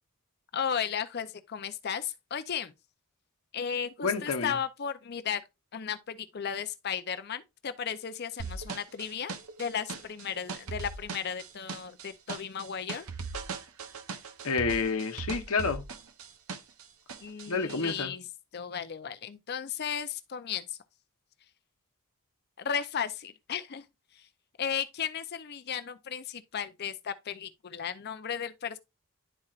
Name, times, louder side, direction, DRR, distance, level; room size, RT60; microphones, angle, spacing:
voice 1, 0.5-2.7 3.5-5.4 5.7-13.1 17.2-20.8 22.6-23.9 24.1-24.3 24.6-28.8, left 7 dB, 45° left, 0.5 m, -35 dB
voice 2, 4.0-4.5 14.4-15.8 17.5-18.1, left 4 dB, 75° left, 0.9 m, -29 dB
sound 1, 8.4-16.8 17.1-17.9, right 4 dB, 75° right, 0.8 m, -39 dB
11.0 x 4.3 x 2.4 m
head